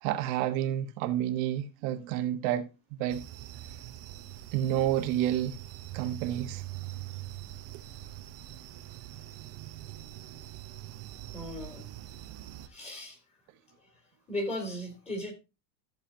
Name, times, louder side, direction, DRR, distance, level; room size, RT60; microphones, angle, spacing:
voice 1, 0.0-2.7 3.0-3.2 4.5-5.6 5.9-6.6, right 12 dB, 50° right, 1.4 m, -29 dB
sound 1, 3.1-12.7, right 14 dB, 30° right, 0.8 m, -43 dB
voice 2, 11.3-11.9 12.6-13.2 14.3-15.3, left 1 dB, 15° left, 3.3 m, -36 dB
14.5 x 7.1 x 2.8 m
supercardioid pair, 155°, 49 cm